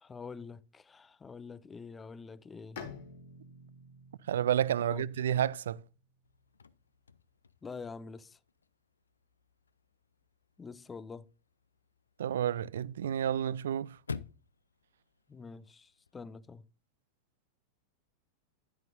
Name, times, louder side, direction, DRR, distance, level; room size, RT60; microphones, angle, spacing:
voice 1, 0.0-2.8 4.8-5.1 7.6-8.4 10.6-11.3 15.3-16.7, left 5 dB, 15° left, 0.5 m, -46 dB
Bowed string instrument, 2.8-6.4, left 5 dB, 55° left, 1.6 m, -50 dB
voice 2, 4.3-5.8 12.2-14.0, right 10 dB, 60° right, 0.3 m, -30 dB
Chirp tweet / Car / Slam, 6.2-16.2, left 5 dB, 75° left, 0.4 m, -51 dB
10.5 x 9.3 x 2.6 m
figure-of-eight pair, 90°, 0 cm